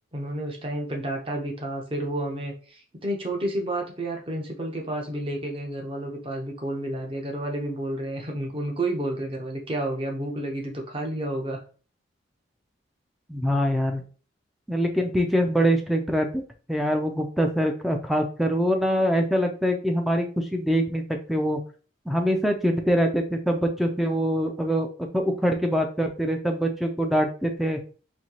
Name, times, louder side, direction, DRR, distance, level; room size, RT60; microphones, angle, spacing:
voice 1, 0.1-11.6, right 1 dB, 30° right, 1 dB, 0.8 m, -30 dB
voice 2, 13.3-14.0 14.7-16.4 16.7-21.0 21.3-21.6 22.1-24.9 25.1-27.8, equal, ahead, 3 dB, 0.4 m, -24 dB
4.3 x 2.7 x 2.8 m, 0.38 s
head